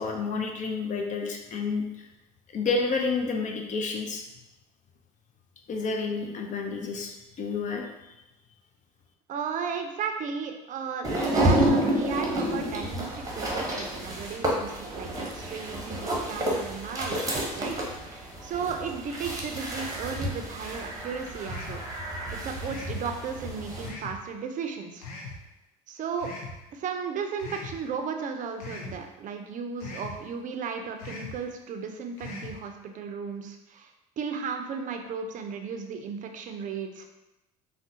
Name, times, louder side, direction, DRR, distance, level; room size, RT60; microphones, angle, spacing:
voice 1, 0.0-1.8 2.5-4.2 5.7-7.8, left 4 dB, 40° left, 2 dB, 0.5 m, -30 dB
voice 2, 9.3-21.8 22.3-25.1 25.9-26.3 26.7-33.9 34.2-37.1, right 6 dB, 45° right, 5 dB, 0.5 m, -35 dB
sound 1, 11.0-23.9, right 1 dB, 20° right, 0.8 m, -30 dB
sound 2, 21.4-21.9 22.6-23.0 23.8-24.2 25.0-25.4 26.2-26.6 27.4-27.8 28.6-29.0 29.8-30.2 31.0-31.4 32.2-32.6, left 3 dB, 85° left, 0.6 m, -40 dB
3.5 x 2.1 x 2.7 m, 0.95 s
hypercardioid pair, 80°, 19 cm